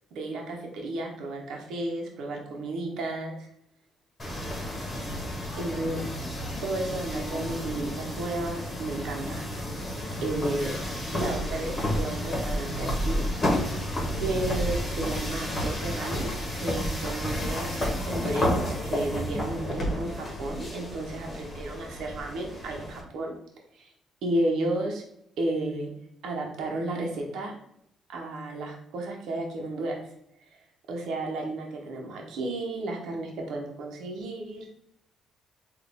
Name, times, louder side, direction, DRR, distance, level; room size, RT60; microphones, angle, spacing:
voice 1, 0.1-3.5 5.6-6.0 6.6-9.4 9.7-9.9 10.2-10.8 11.1-13.3 14.2-23.3 23.7-23.9 24.2-25.0 25.4-25.9 26.2-27.5 28.1-30.0 30.4-30.6 30.9-34.6, right 2 dB, 80° right, 0 dB, 0.8 m, -33 dB
sound 1, 4.2-23.0, equal, 30° left, 1.2 m, -31 dB
4.0 x 2.5 x 3.6 m, 0.76 s
cardioid pair, 90°, 0 cm